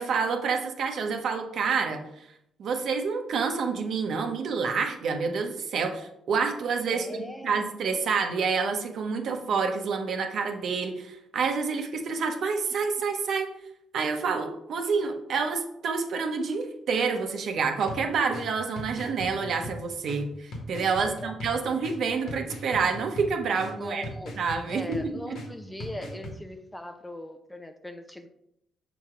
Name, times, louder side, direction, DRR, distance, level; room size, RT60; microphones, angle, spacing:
voice 1, 0.0-2.3 2.6-13.5 13.9-24.0 24.4-25.4, right 5 dB, 65° right, 5 dB, 0.9 m, -28 dB
voice 2, 6.9-7.7 21.1-21.8 23.8-24.4 24.7-28.3, left 1 dB, 10° left, 7 dB, 0.6 m, -40 dB
sound 1, 17.9-26.4, equal, 70° left, 1.5 m, -40 dB
7.0 x 3.0 x 4.9 m, 0.79 s
cardioid pair, 90°, 0 cm